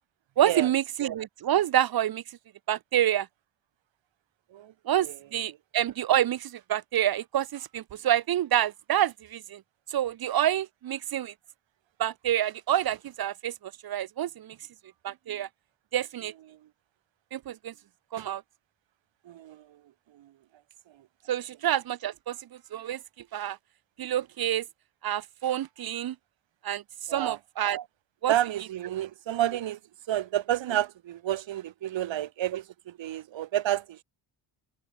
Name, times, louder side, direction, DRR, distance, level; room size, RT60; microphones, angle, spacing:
voice 1, 0.4-2.2 2.7-3.3 4.9-9.6 9.9-11.3 12.0-13.5 13.8-14.5 15.0-15.5 15.9-16.3 17.3-17.7 18.1-18.4 21.3-22.4 22.7-23.0 23.3-23.6 24.0-24.6 25.0-26.1 26.6-26.8 27.1-27.8 28.2-28.3, right 11 dB, 55° right, 1.1 m, -27 dB
voice 2, 19.2-19.8 20.1-20.3 27.1-27.4 28.3-29.8 30.1-34.0, right 12 dB, 90° right, 5.7 m, -30 dB
wide cardioid pair, 175°, 44 cm